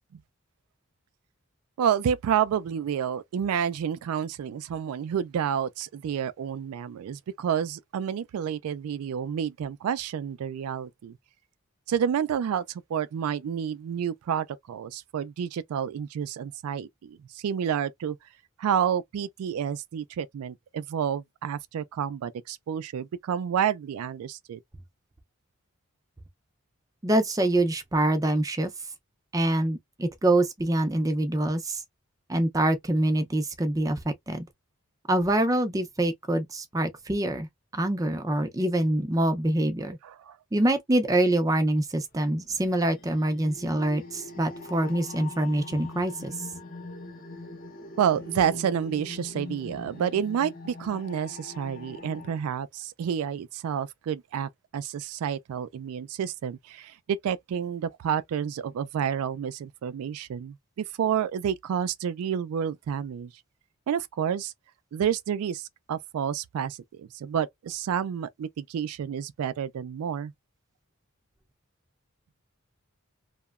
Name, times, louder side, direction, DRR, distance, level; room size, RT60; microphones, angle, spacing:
voice 1, 1.8-11.2 11.9-18.2 18.6-24.6 40.0-40.4 48.0-63.3 63.9-64.5 64.9-70.3, right 8 dB, 85° right, 0.3 m, -29 dB
voice 2, 27.0-28.7 29.3-31.8 32.3-34.5 35.1-37.5 37.7-40.0 40.5-46.5, right 1 dB, 15° right, 0.4 m, -25 dB
sound 1, 42.2-52.4, left 2 dB, 40° left, 0.6 m, -42 dB
2.8 x 2.1 x 2.3 m
head